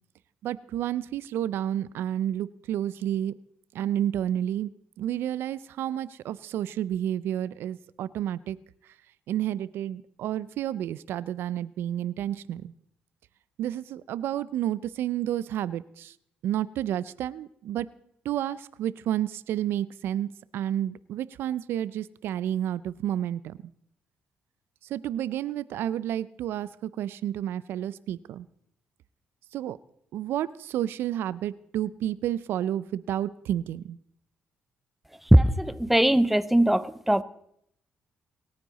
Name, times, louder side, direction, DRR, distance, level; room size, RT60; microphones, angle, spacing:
voice 1, 0.4-3.3 3.7-4.7 5.0-8.6 9.3-12.7 13.6-16.1 16.4-17.9 18.3-23.6 24.9-28.5 29.5-29.8 30.1-34.0, right 11 dB, 80° right, 0.4 m, -30 dB
voice 2, 35.3-37.2, right 1 dB, 5° right, 0.7 m, -20 dB
25.5 x 9.6 x 4.0 m
cardioid pair, 90°, 4 cm